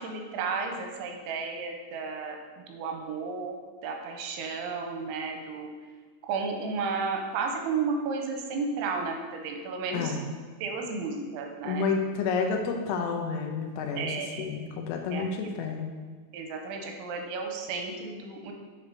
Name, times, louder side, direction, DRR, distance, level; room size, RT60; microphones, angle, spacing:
voice 1, 0.0-2.4 2.7-5.7 6.2-10.2 10.6-11.9 14.0-14.5 15.1-15.5 16.3-18.5, right 4 dB, 85° right, 3 dB, 3.0 m, -33 dB
voice 2, 9.9-10.2 11.6-14.1 14.4-15.9, left 5 dB, 85° left, 3 dB, 3.1 m, -30 dB
7.0 x 6.8 x 2.8 m, 1.5 s
omnidirectional pair, 5.4 m